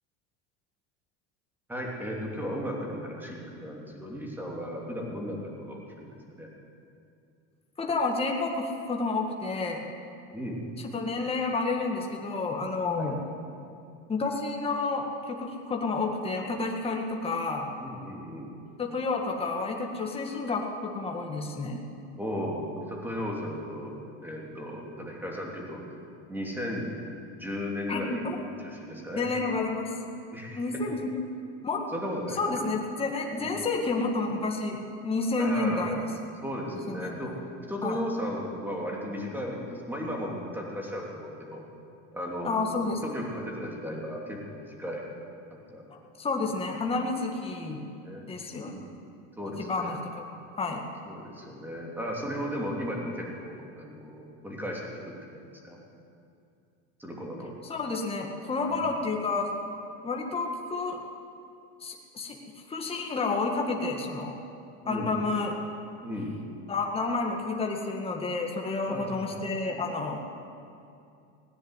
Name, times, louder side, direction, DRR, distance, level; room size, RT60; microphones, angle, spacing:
voice 1, 1.7-6.5 10.3-10.7 13.0-13.1 17.8-18.5 22.2-23.9 24.2-25.8 26.3-26.9 27.3-28.2 28.6-29.3 30.3-30.6 31.9-32.7 33.4-33.6 35.4-36.1 36.4-37.3 37.7-41.6 42.1-42.6 43.0-45.0 45.7-45.8 46.4-46.8 48.0-48.3 48.6-48.9 49.4-50.0 51.1-55.8 57.0-57.5 58.6-58.9 64.8-65.2 66.0-66.3 68.9-69.3, equal, 5° right, -2 dB, 3.0 m, -35 dB
voice 2, 7.8-9.9 10.8-13.2 14.1-17.7 18.8-21.8 27.9-28.4 29.2-29.9 30.6-31.2 31.6-31.8 32.4-36.1 36.9-37.2 37.8-38.0 42.4-43.0 46.2-47.9 48.3-48.8 49.6-50.3 50.6-50.8 57.7-59.5 60.0-61.0 61.8-62.4 62.7-64.3 64.9-65.5 66.7-70.3, left 3 dB, 15° left, 0 dB, 1.7 m, -30 dB
17.5 x 9.9 x 7.9 m, 2.5 s
supercardioid pair, 130°, 36 cm